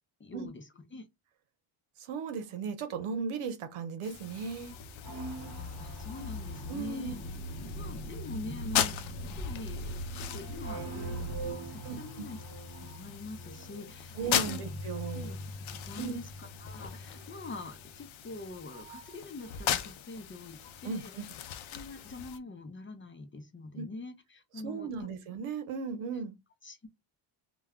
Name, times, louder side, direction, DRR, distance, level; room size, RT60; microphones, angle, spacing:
voice 1, 0.2-1.1 5.4-7.2 7.7-12.4 12.8-14.6 15.1-21.3 21.7-25.1 26.6-26.9, left 3 dB, 25° left, 0.6 m, -45 dB
voice 2, 2.0-4.7 6.7-7.1 11.8-12.3 14.2-15.3 16.0-16.2 20.8-21.2 23.8-23.9 24.6-26.4, right 5 dB, 85° right, 0.7 m, -36 dB
sound 1, 4.0-22.4, left 10 dB, 70° left, 0.6 m, -39 dB
sound 2, 4.1-19.9 20.2-21.0, right 1 dB, 35° right, 0.7 m, -45 dB
sound 3, 4.5-11.5, equal, 50° left, 0.9 m, -41 dB
2.2 x 2.1 x 3.5 m
cardioid pair, 90°, 49 cm